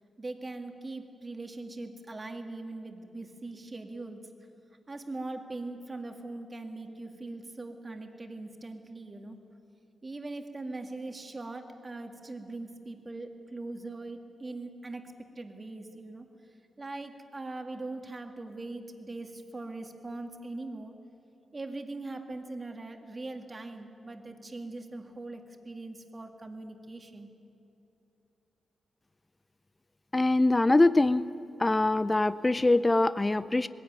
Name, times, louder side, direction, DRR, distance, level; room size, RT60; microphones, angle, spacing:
voice 1, 0.2-4.3 4.9-9.4 10.0-16.3 16.8-21.0 21.5-27.3, right 2 dB, 30° right, 4 dB, 2.2 m, -41 dB
voice 2, 30.1-31.3 31.6-33.7, left 2 dB, 20° left, 15 dB, 0.5 m, -23 dB
20.0 x 16.5 x 9.6 m, 2.8 s
cardioid pair, 80°, 0 cm